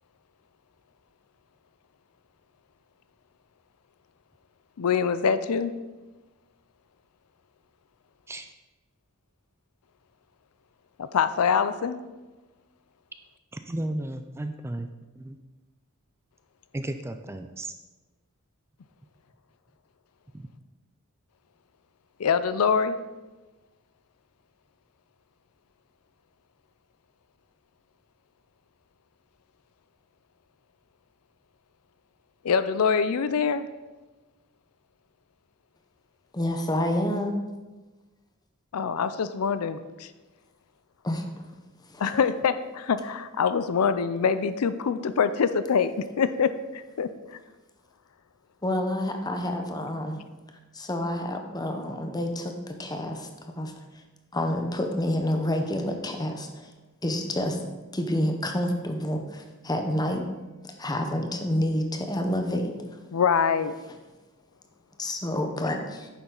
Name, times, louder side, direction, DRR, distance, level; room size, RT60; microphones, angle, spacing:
voice 1, 4.8-5.7 11.0-12.0 22.2-23.0 32.4-33.6 38.7-40.1 42.0-47.4 63.1-63.7, left 6 dB, 80° left, 12 dB, 0.5 m, -25 dB
voice 2, 13.5-14.9 15.2-15.4 16.7-17.7 20.3-20.5, right 1 dB, 10° right, 7 dB, 0.4 m, -34 dB
voice 3, 36.3-37.4 41.0-41.2 41.9-42.0 48.6-50.2 50.7-53.7 54.3-56.7 57.0-57.6 57.9-60.3 60.8-62.7 65.0-66.1, left 1 dB, 20° left, 4 dB, 0.9 m, -28 dB
9.5 x 7.0 x 3.9 m, 1.2 s
head